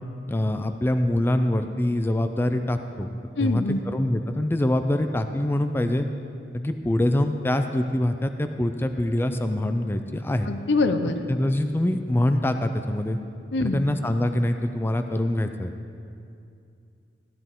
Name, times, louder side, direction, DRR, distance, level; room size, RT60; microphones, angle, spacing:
voice 1, 0.3-3.1 3.4-6.1 6.5-10.5 11.3-13.2 13.6-15.7, left 1 dB, 15° left, 7 dB, 0.4 m, -24 dB
voice 2, 3.4-3.9 10.5-11.2 13.5-13.9, left 2 dB, 80° left, 8 dB, 0.7 m, -24 dB
14.0 x 10.0 x 3.7 m, 2.5 s
head